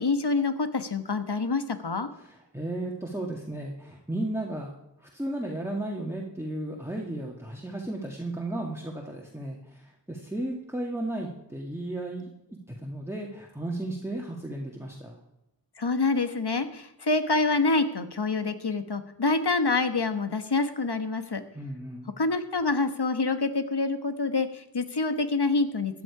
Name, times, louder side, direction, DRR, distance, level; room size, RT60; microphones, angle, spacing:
voice 1, 0.0-2.1 15.8-21.4 22.2-26.0, left 3 dB, 60° left, 9 dB, 1.3 m, -26 dB
voice 2, 2.2-4.7 5.0-12.3 12.7-15.2 21.5-22.1, right 1 dB, 5° right, -1 dB, 1.9 m, -34 dB
15.0 x 10.5 x 4.9 m, 0.88 s
wide cardioid pair, 45°, 44 cm